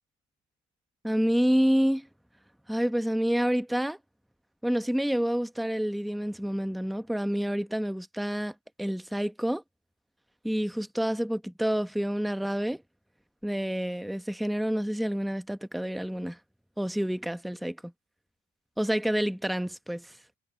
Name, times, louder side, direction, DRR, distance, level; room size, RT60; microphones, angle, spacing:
voice 1, 1.0-2.1 2.7-4.0 4.6-9.6 10.4-12.8 13.4-16.4 16.8-17.9 18.8-20.2, equal, ahead, 1.0 m, -28 dB
cardioid pair, 90°, 30 cm